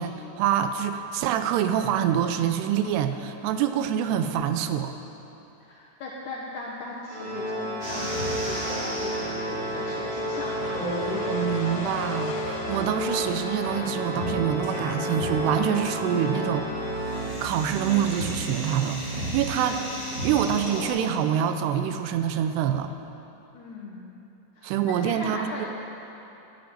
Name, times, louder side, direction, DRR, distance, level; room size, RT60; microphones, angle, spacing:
voice 1, 0.0-4.9 11.2-19.0 19.3-22.9 24.6-25.7, right 9 dB, 80° right, 8 dB, 2.6 m, -26 dB
voice 2, 5.6-10.8 23.5-24.2 24.6-25.7, left 3 dB, 70° left, -4 dB, 1.9 m, -38 dB
sound 1, 7.1-14.2, left 4 dB, 85° left, 3.4 m, -43 dB
Organ, 7.1-17.8, equal, 50° right, 4.9 m, -31 dB
sound 2, 7.8-20.9, right 1 dB, 20° right, 3.6 m, -35 dB
12.0 x 7.9 x 9.0 m, 2.9 s
omnidirectional pair, 4.9 m